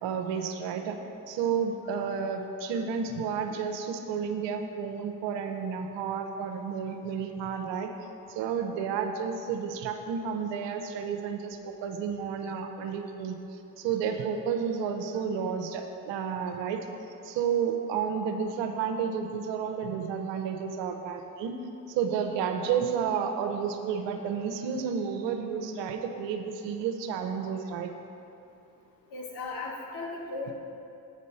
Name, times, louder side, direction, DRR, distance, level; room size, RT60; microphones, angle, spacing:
voice 1, 0.0-1.0 1.3-7.9 8.3-16.8 17.2-21.5 21.9-27.9, right 6 dB, 60° right, 5 dB, 0.9 m, -31 dB
voice 2, 29.1-30.5, left 3 dB, 50° left, -3 dB, 2.1 m, -36 dB
8.1 x 5.2 x 5.5 m, 2.7 s
hypercardioid pair, 65°, 49 cm